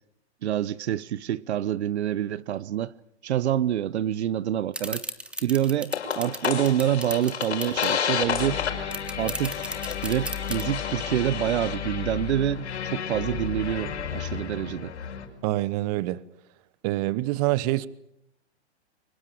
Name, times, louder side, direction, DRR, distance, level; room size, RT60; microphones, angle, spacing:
voice 1, 0.4-2.9 3.2-5.0 5.4-8.6 9.2-9.6 10.0-14.9, right 11 dB, 70° right, 0.9 m, -27 dB
sound 1, 4.7-7.9 8.4-8.5 8.7-10.6, right 2 dB, 5° right, 1.4 m, -34 dB
sound 2, 5.9-15.3, left 8 dB, 75° left, 5.3 m, -31 dB
voice 2, 15.4-16.2 16.8-17.9, right 17 dB, 35° right, 0.9 m, -26 dB
24.0 x 20.5 x 8.5 m
hypercardioid pair, 140°, 34 cm